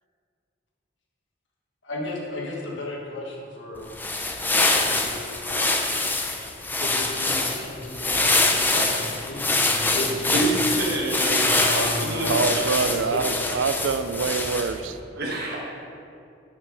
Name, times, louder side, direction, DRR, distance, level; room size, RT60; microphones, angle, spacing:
voice 1, 1.8-3.9 4.5-5.9 6.8-10.6 11.4-12.5 12.7-13.5, left 2 dB, 75° left, -3 dB, 1.4 m, -34 dB
sound 1, 3.8-14.9, left 2 dB, 10° left, 0.6 m, -24 dB
voice 2, 10.8-12.6 15.2-15.6, right 2 dB, 55° right, -4 dB, 1.6 m, -27 dB
voice 3, 12.3-15.0, right 5 dB, 85° right, 11 dB, 0.4 m, -25 dB
9.5 x 6.0 x 5.4 m, 2.5 s
head